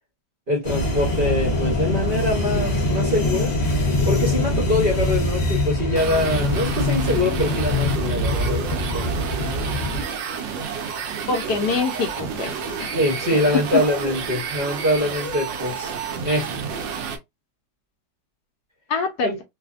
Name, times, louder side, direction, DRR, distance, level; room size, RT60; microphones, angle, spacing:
voice 1, 0.5-3.5 4.0-9.3 12.9-15.9 16.2-16.6 19.2-19.4, left 1 dB, 45° right, 0.7 m, -24 dB
sound 1, 0.6-10.0, left 2 dB, 45° left, 0.5 m, -23 dB
sound 2, 5.9-17.2, right 6 dB, 90° right, 1.3 m, -30 dB
voice 2, 11.3-12.9 18.9-19.3, left 4 dB, 70° left, 1.0 m, -25 dB
3.2 x 2.1 x 2.4 m
omnidirectional pair, 2.0 m